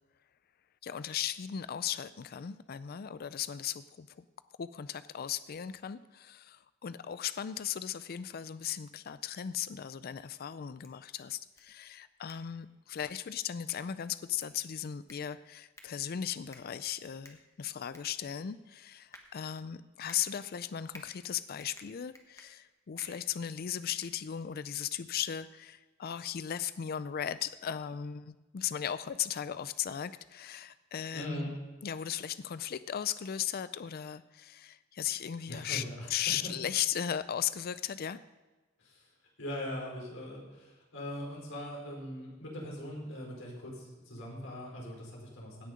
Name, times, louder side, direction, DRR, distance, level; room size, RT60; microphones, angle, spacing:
voice 1, 0.8-4.3 4.6-31.6 31.8-35.8 36.1-38.2, left 9 dB, 50° left, 14 dB, 0.4 m, -37 dB
sound 1, 10.6-24.7, left 2 dB, 15° left, 1.4 m, -58 dB
voice 2, 31.1-31.5 35.5-36.1 38.8-39.1 39.4-45.7, equal, 80° left, -2 dB, 4.6 m, -41 dB
17.0 x 6.5 x 5.1 m, 1.2 s
head